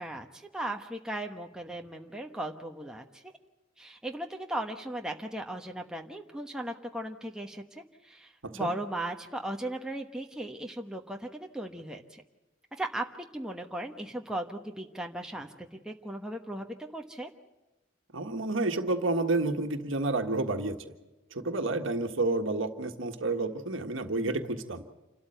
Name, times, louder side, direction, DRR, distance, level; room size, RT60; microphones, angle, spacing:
voice 1, 0.0-3.2 3.8-12.2 12.8-16.7 16.9-17.3, right 1 dB, 5° right, 2 dB, 1.1 m, -37 dB
voice 2, 18.1-20.8 21.3-24.8, right 2 dB, 70° right, 5 dB, 1.5 m, -30 dB
28.0 x 13.0 x 7.9 m, 1.0 s
head